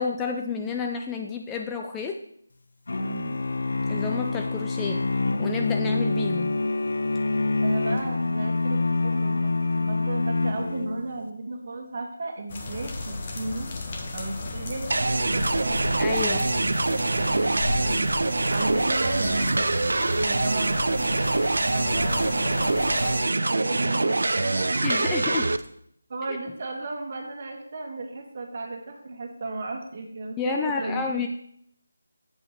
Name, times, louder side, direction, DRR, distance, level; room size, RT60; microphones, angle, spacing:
voice 1, 0.0-2.2 3.9-5.1 5.4-6.6 16.0-16.5 24.8-25.5 26.3-26.4 30.4-31.3, left 5 dB, 10° left, 2 dB, 0.3 m, -30 dB
sound 1, 2.9-11.2, left 3 dB, 65° left, 0.5 m, -26 dB
voice 2, 3.0-3.4 7.6-13.7 14.1-15.8 16.2-16.6 17.1-19.6 20.2-25.1 26.1-31.2, right 2 dB, 40° right, 3 dB, 1.6 m, -34 dB
sound 2, 12.5-23.2, left 2 dB, 35° left, 1.2 m, -34 dB
sound 3, 14.9-25.6, right 2 dB, 70° right, 0.5 m, -24 dB
7.5 x 5.4 x 5.9 m, 0.70 s
figure-of-eight pair, 165°, 0 cm